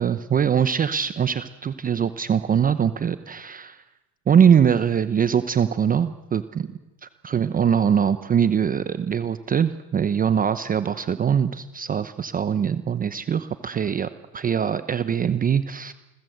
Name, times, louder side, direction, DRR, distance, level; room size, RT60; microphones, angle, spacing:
voice 1, 0.0-3.8 4.3-6.8 7.2-15.9, right 8 dB, 15° right, 12 dB, 0.8 m, -22 dB
28.5 x 21.0 x 8.0 m, 1.1 s
supercardioid pair, 130°, 50 cm